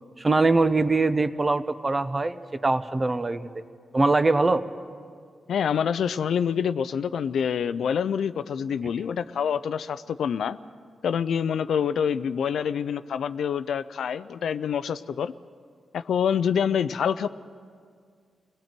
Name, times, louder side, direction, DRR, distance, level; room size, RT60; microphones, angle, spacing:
voice 1, 0.2-3.5 3.9-4.6, right 3 dB, 20° right, 12 dB, 0.7 m, -22 dB
voice 2, 5.5-10.6 11.0-15.3 15.9-17.3, left 7 dB, 75° left, 13 dB, 0.5 m, -26 dB
30.0 x 19.5 x 4.5 m, 2.1 s
wide cardioid pair, 145°, 0 cm